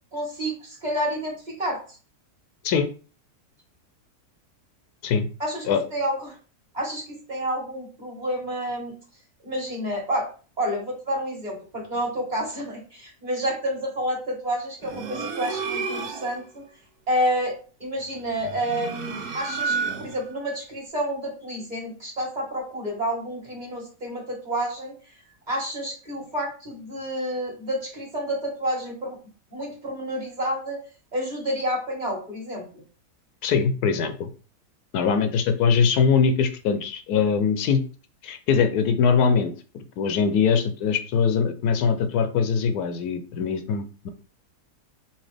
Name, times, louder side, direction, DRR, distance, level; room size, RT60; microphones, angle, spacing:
voice 1, 0.1-1.8 5.4-5.6 5.9-6.4 6.7-8.9 9.4-10.3 10.6-16.6 17.1-17.5 17.8-24.9 25.5-29.2 29.5-30.8 31.1-32.6, equal, 30° right, -3 dB, 1.7 m, -29 dB
sound 1, 14.8-16.4 18.3-20.3, right 5 dB, 75° right, 1.3 m, -31 dB
voice 2, 33.4-34.3 34.9-37.8 38.2-39.5 40.0-44.1, left 6 dB, 80° left, 9 dB, 1.1 m, -22 dB
5.6 x 2.7 x 3.4 m, 0.37 s
omnidirectional pair, 1.7 m